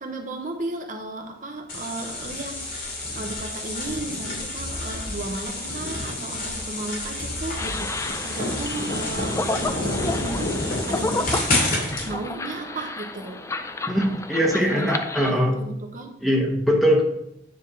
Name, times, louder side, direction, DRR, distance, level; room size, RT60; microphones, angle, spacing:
voice 1, 0.0-11.7 12.0-13.4 14.7-14.8 15.3-16.1, right 2 dB, 45° right, 3 dB, 0.8 m, -35 dB
sound 1, 1.7-12.1, left 1 dB, 50° left, 2.5 m, -29 dB
sound 2, 7.6-15.3, left 2 dB, 15° left, 0.4 m, -31 dB
voice 2, 13.9-15.5 16.2-17.0, equal, ahead, -1 dB, 1.1 m, -21 dB
9.5 x 3.6 x 5.4 m, 0.79 s
head